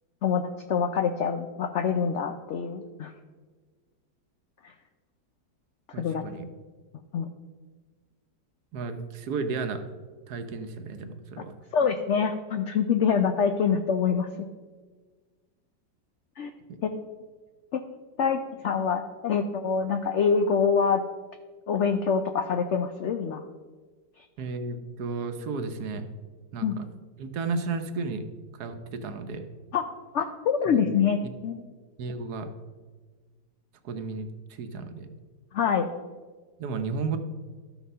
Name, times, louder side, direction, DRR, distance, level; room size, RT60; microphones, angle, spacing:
voice 1, 0.7-3.1 6.0-6.2 7.1-7.3 11.7-14.3 16.4-16.5 16.8-17.1 17.7-17.8 18.2-21.0 21.7-23.4 26.6-26.8 29.7-29.8 30.1-31.6 35.5-35.9, left 6 dB, 80° left, 8 dB, 0.6 m, -25 dB
voice 2, 5.9-6.5 8.7-9.8 10.3-11.5 16.7-16.8 24.4-26.1 26.5-26.8 27.2-28.2 28.6-29.4 30.7-30.8 31.2-31.3 32.0-32.5 33.8-35.1 36.6-37.2, right 4 dB, 70° right, 8 dB, 1.2 m, -33 dB
12.0 x 6.0 x 5.5 m, 1.4 s
omnidirectional pair, 1.9 m